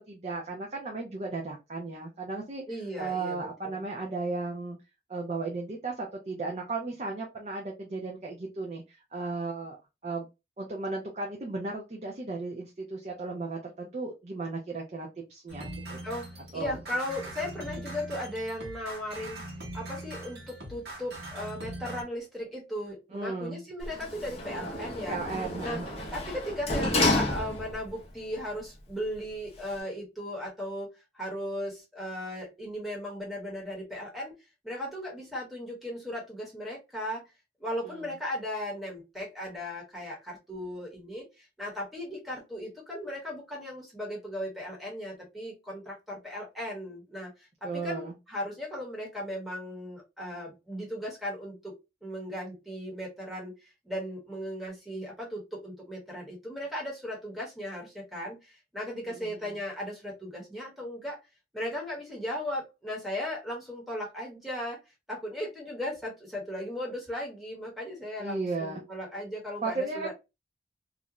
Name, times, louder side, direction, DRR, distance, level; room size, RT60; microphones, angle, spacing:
voice 1, 0.0-2.6 3.0-4.8 5.1-9.8 10.0-10.3 10.6-16.0 16.5-16.8 23.1-23.6 25.1-26.0 37.8-38.0 47.6-48.1 59.2-59.3 68.2-68.8 69.6-70.1, right 3 dB, 40° right, 0.5 m, -35 dB
voice 2, 2.7-3.8 16.0-19.4 19.7-25.2 25.6-25.8 26.1-34.3 34.6-37.3 37.6-51.7 52.0-61.2 61.5-64.8 65.1-70.1, left 1 dB, ahead, 1.0 m, -37 dB
sound 1, 15.5-22.0, right 1 dB, 65° right, 0.9 m, -41 dB
Sliding door, 23.8-27.9 28.4-28.5, left 2 dB, 35° left, 0.6 m, -30 dB
2.4 x 2.1 x 2.8 m
head